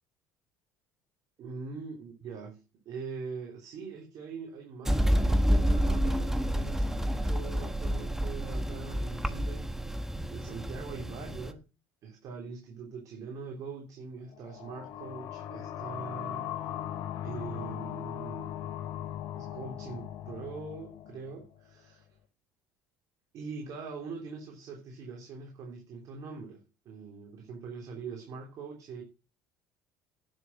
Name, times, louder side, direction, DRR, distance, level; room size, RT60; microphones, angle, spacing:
voice 1, 1.4-9.7 10.3-11.6 12.0-16.5 17.2-18.7 19.3-22.0 23.3-29.0, right 4 dB, 60° right, 3.4 m, -42 dB
sound 1, 4.8-11.5, equal, 5° right, 1.3 m, -29 dB
sound 2, 14.3-21.7, left 11 dB, 75° left, 2.1 m, -39 dB
10.5 x 6.9 x 6.3 m
supercardioid pair, 95°, 7 cm